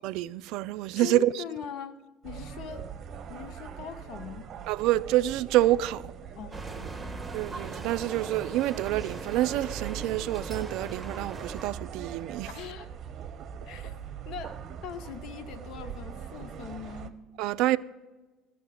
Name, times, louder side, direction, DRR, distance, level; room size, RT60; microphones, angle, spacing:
voice 1, 0.0-1.4 4.7-6.0 7.3-12.5 17.4-17.8, right 15 dB, 70° right, 0.3 m, -27 dB
voice 2, 1.0-2.9 3.3-4.5 6.4-7.3 12.5-12.9 13.7-14.0 14.2-17.2, left 8 dB, 65° left, 0.7 m, -41 dB
sound 1, 2.2-17.1, right 7 dB, 50° right, 0.7 m, -41 dB
sound 2, 6.5-11.7, right 3 dB, 15° right, 1.1 m, -40 dB
13.0 x 6.4 x 6.8 m
hypercardioid pair, 65°, 0 cm